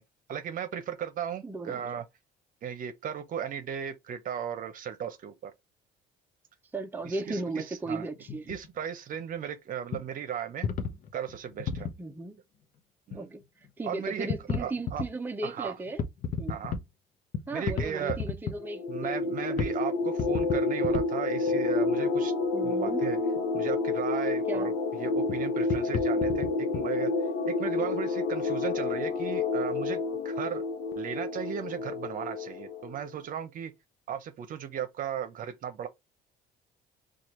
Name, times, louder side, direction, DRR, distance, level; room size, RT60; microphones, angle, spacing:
voice 1, 0.3-2.0 2.6-5.5 7.0-8.1 8.5-10.7 11.1-11.9 13.1-13.3 13.8-14.3 14.6-15.0 15.4-15.8 16.5-16.8 17.5-18.2 18.9-22.3 22.6-23.2 23.5-27.1 27.5-30.6 31.0-33.7 34.1-35.9, right 8 dB, 55° right, 0.8 m, -36 dB
voice 2, 1.4-1.8 6.7-8.5 12.0-12.4 13.1-13.4 13.8-16.0 16.4-16.6 17.5-19.8 22.5-23.0 24.5-24.7, right 2 dB, 10° right, 0.6 m, -36 dB
sound 1, 8.2-8.7 9.1-9.2 9.9-10.1 10.6-12.0 13.1-13.2 13.6-13.7 14.3-15.1 15.9-16.9 17.3-18.6 19.2-19.3 19.6-19.8 20.0-21.1 21.5-21.6 23.4-23.6 25.3-25.4 25.6-26.8, left 5 dB, 50° left, 0.7 m, -33 dB
sound 2, 18.6-33.0, left 3 dB, 85° left, 0.8 m, -29 dB
4.4 x 2.4 x 3.1 m
cardioid pair, 110°, 17 cm